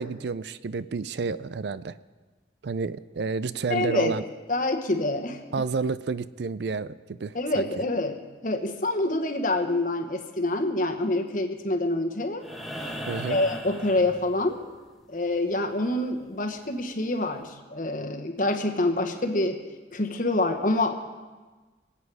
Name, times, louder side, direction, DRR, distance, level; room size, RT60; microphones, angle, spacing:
voice 1, 0.0-1.9 2.6-4.2 5.5-6.9 7.2-7.7 13.1-13.4, right 4 dB, 65° right, 16 dB, 0.4 m, -30 dB
voice 2, 3.7-4.2 4.5-5.4 7.3-12.4 13.2-14.6 15.1-19.6 19.9-20.9, left 2 dB, 45° left, 5 dB, 1.2 m, -26 dB
sound 1, 12.4-14.7 16.6-16.7, equal, ahead, 1.1 m, -37 dB
25.0 x 8.4 x 4.8 m, 1.3 s
head